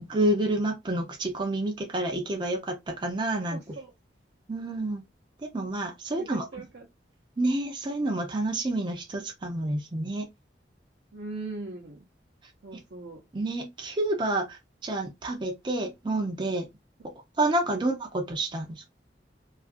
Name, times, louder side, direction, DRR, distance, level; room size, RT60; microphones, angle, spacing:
voice 1, 0.0-3.7 4.5-5.0 5.4-6.5 7.4-10.3 13.3-16.7 17.4-18.8, right 1 dB, 25° right, 0.4 m, -29 dB
voice 2, 3.5-3.9 6.2-6.9 11.1-12.0 12.6-13.2, right 3 dB, 65° right, 0.6 m, -40 dB
2.7 x 2.4 x 2.4 m
head